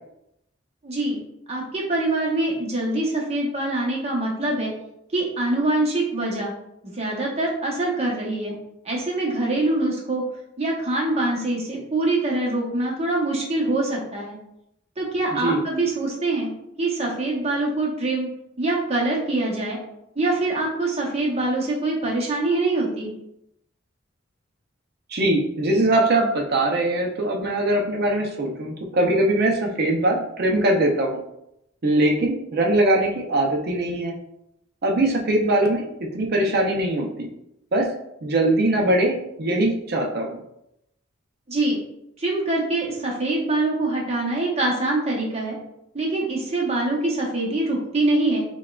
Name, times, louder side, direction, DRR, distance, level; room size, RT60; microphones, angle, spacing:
voice 1, 0.8-1.2 1.5-4.7 5.1-6.5 6.8-8.6 8.8-10.2 10.6-14.4 15.0-16.5 16.8-18.3 18.6-19.8 20.2-23.1 41.5-41.8 42.2-45.6 45.9-48.4, right 2 dB, 30° right, -2 dB, 0.9 m, -24 dB
voice 2, 15.3-15.6 25.1-31.2 31.8-34.1 34.8-37.3 37.7-37.9 38.2-40.4, right 1 dB, 50° right, 1 dB, 0.5 m, -21 dB
5.8 x 2.2 x 2.3 m, 0.80 s
head